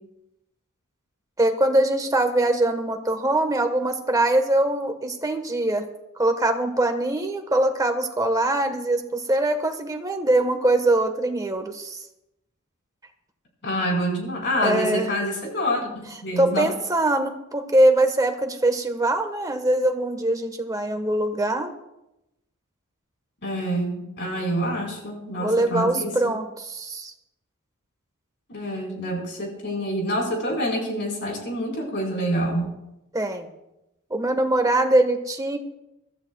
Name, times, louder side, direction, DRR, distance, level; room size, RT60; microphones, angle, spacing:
voice 1, 1.4-5.9 6.1-12.0 14.6-15.1 16.4-21.7 25.4-27.1 33.1-33.5 34.1-35.6, right 1 dB, 15° right, 6 dB, 1.3 m, -22 dB
voice 2, 13.6-16.7 23.4-26.1 28.5-32.7, equal, 55° left, -1 dB, 4.5 m, -27 dB
24.0 x 13.5 x 2.3 m, 0.90 s
head